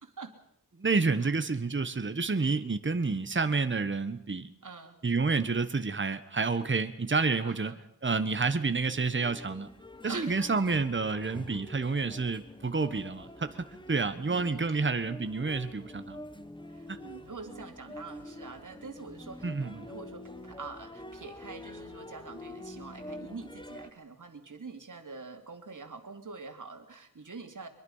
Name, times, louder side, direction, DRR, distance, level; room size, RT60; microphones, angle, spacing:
voice 1, 0.0-0.3 4.6-5.0 7.4-7.8 10.1-10.5 11.3-11.6 14.3-14.7 16.7-27.7, right 4 dB, 50° right, 5 dB, 2.9 m, -45 dB
voice 2, 0.8-4.5 5.0-7.8 8.0-9.7 10.0-16.2 16.9-17.0 19.4-19.9, right 4 dB, 30° right, 10 dB, 1.3 m, -29 dB
sound 1, 8.9-23.9, left 1 dB, 10° left, 1.2 m, -46 dB
23.5 x 22.5 x 5.7 m, 0.68 s
wide cardioid pair, 105°, 38 cm